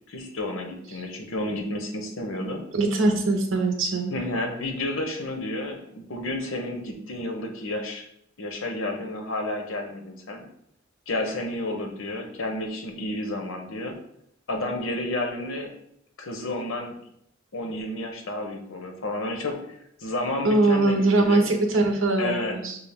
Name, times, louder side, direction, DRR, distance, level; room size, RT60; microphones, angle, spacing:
voice 1, 0.1-2.6 4.1-8.1 8.4-10.4 11.1-13.9 14.5-15.7 16.2-16.9 17.5-21.5 22.2-22.6, left 1 dB, 85° left, 3 dB, 0.9 m, -31 dB
voice 2, 2.7-4.2 20.4-22.8, right 2 dB, 80° right, 3 dB, 0.8 m, -22 dB
6.1 x 2.4 x 3.5 m, 0.72 s
head